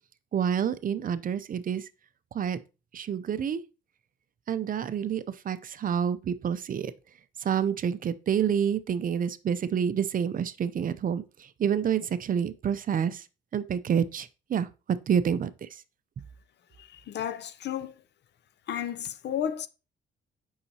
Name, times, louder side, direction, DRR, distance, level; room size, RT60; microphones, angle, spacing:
voice 1, 0.3-1.9 2.3-2.6 2.9-3.6 4.5-6.9 7.4-13.2 13.5-15.8, right 8 dB, 45° right, 0.5 m, -28 dB
voice 2, 16.8-17.9 18.7-19.7, left 9 dB, 60° left, 0.5 m, -33 dB
6.8 x 5.6 x 2.8 m
cardioid pair, 90°, 20 cm